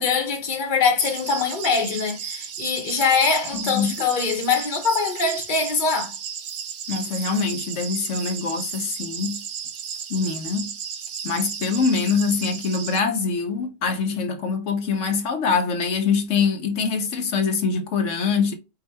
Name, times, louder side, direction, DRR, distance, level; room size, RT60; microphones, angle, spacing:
voice 1, 0.0-6.1, left 5 dB, 40° left, 1.1 m, -23 dB
sound 1, 1.0-13.0, right 7 dB, 65° right, 0.9 m, -34 dB
voice 2, 3.5-3.9 6.9-9.4 10.1-10.7 11.2-18.5, left 5 dB, 75° left, 1.1 m, -24 dB
4.9 x 2.6 x 4.1 m
omnidirectional pair, 1.3 m